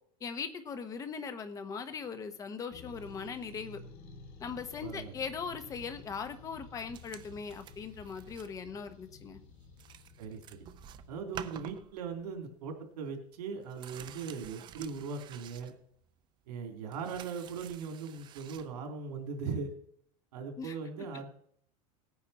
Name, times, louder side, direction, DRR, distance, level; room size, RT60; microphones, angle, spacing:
voice 1, 0.2-3.8 4.4-9.4 20.6-20.7, left 5 dB, 15° left, 9 dB, 1.0 m, -40 dB
Tibetan Chant stretched, 2.7-11.2, left 4 dB, 40° left, 2.5 m, -52 dB
voice 2, 4.8-5.1 10.2-10.6 11.1-15.7 16.5-19.7 20.3-21.3, right 5 dB, 85° right, 3 dB, 3.3 m, -39 dB
sound 1, 6.9-8.6 8.9-9.1 9.5-9.6 9.8-12.4 12.7-12.8 13.1-16.2 16.6-18.7 19.7-19.8, right 10 dB, 25° right, 0.5 m, -50 dB
17.5 x 9.6 x 4.3 m, 0.65 s
supercardioid pair, 165°, 20 cm